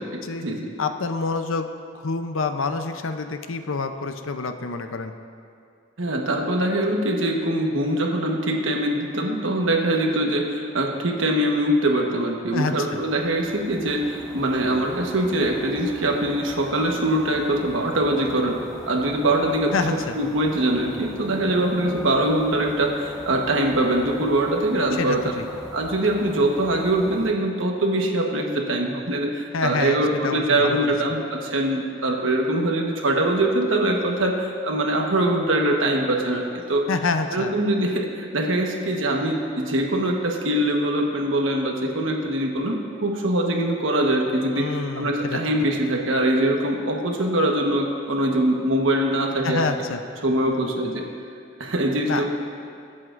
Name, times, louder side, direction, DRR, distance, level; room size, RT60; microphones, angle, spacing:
voice 1, 0.0-0.4 0.8-1.7 1.9-5.1 12.5-12.8 19.7-20.1 24.9-25.4 29.5-30.9 36.9-37.5 44.6-45.4 49.4-50.0 52.1-52.2, left 4 dB, 75° left, 7 dB, 0.6 m, -27 dB
voice 2, 6.0-18.6 18.9-19.9 20.1-25.3 25.7-36.9 37.3-49.7 50.2-51.0 51.6-52.3, right 1 dB, 75° right, 1 dB, 1.2 m, -23 dB
sound 1, 12.8-27.3, equal, 5° left, 0.9 m, -41 dB
22.0 x 7.7 x 2.5 m, 2.4 s
head